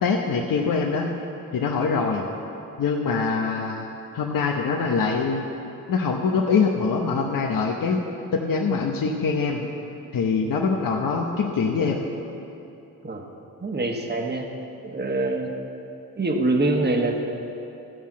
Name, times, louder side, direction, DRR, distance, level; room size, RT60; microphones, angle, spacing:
voice 1, 0.0-1.1 1.5-2.2 2.8-3.9 4.1-5.5 5.9-8.0 8.3-9.6 10.1-12.0, left 5 dB, 65° left, 1 dB, 1.0 m, -23 dB
voice 2, 13.6-14.5 14.8-15.5 16.2-17.3, right 2 dB, 30° right, 2 dB, 1.5 m, -24 dB
14.0 x 5.6 x 7.3 m, 2.8 s
supercardioid pair, 55°, 35 cm